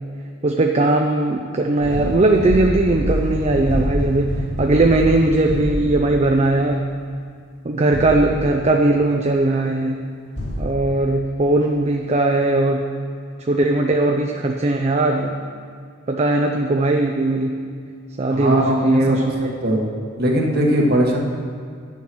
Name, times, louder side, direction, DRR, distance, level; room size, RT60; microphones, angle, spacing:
voice 1, 0.4-6.9 7.6-10.1 10.6-12.9 13.4-15.4 16.1-17.6 18.2-19.5, right 2 dB, 30° right, 2 dB, 0.5 m, -19 dB
sound 1, 1.8-6.5 7.9-8.8 10.4-10.7, equal, 55° left, 2.4 m, -26 dB
voice 2, 18.3-19.9 20.2-21.2, equal, 50° right, -1 dB, 1.3 m, -20 dB
9.4 x 7.1 x 6.1 m, 2.2 s
head